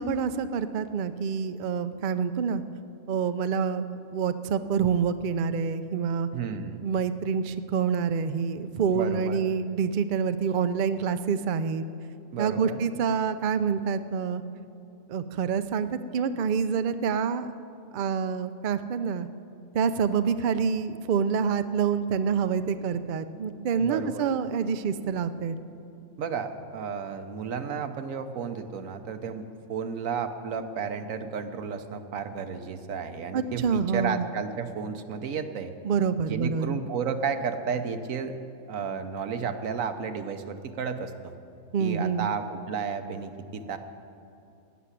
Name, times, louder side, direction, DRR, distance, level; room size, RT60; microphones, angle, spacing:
voice 1, 0.0-2.6 3.1-6.3 6.8-11.8 12.4-14.4 15.1-17.5 17.9-19.3 19.7-25.6 33.3-34.3 35.8-36.8 41.7-42.3, right 6 dB, 55° right, 11 dB, 0.6 m, -27 dB
voice 2, 6.3-6.8 8.9-9.4 12.3-12.8 23.8-24.3 26.2-35.7 36.3-38.4 38.7-41.3 41.8-43.8, right 6 dB, 80° right, 8 dB, 1.3 m, -32 dB
15.5 x 7.0 x 9.8 m, 2.8 s
omnidirectional pair, 1.4 m